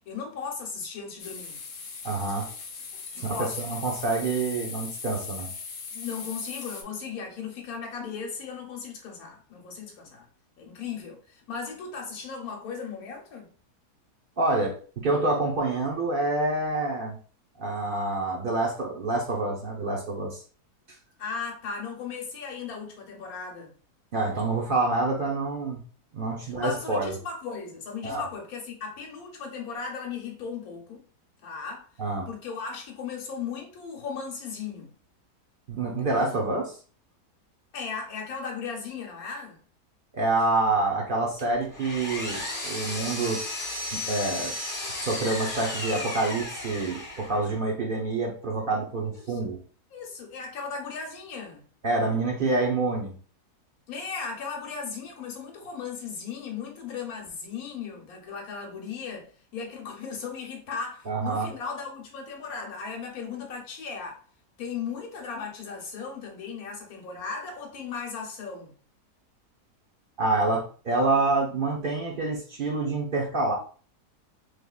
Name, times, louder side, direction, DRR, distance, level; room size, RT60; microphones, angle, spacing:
voice 1, 0.0-1.6 3.1-3.9 5.9-10.3 10.6-13.5 21.2-23.7 26.4-31.0 31.4-31.9 32.3-34.9 36.0-36.3 37.7-39.6 49.1-49.4 49.9-51.6 53.9-64.2 64.6-68.7, left 5 dB, 65° left, 1.3 m, -37 dB
sound 1, 1.2-6.8, left 5 dB, 90° left, 0.4 m, -39 dB
voice 2, 2.0-2.5 3.2-5.5 14.4-17.2 17.6-20.4 24.1-25.8 26.1-27.1 28.0-28.2 32.0-32.3 35.7-36.7 40.1-43.4 43.9-44.5 45.0-49.6 51.8-53.2 61.1-61.5 70.2-73.5, right 2 dB, 50° right, 0.6 m, -27 dB
Power tool, 41.4-47.5, left 2 dB, 35° left, 1.3 m, -34 dB
3.5 x 3.1 x 2.3 m
omnidirectional pair, 1.7 m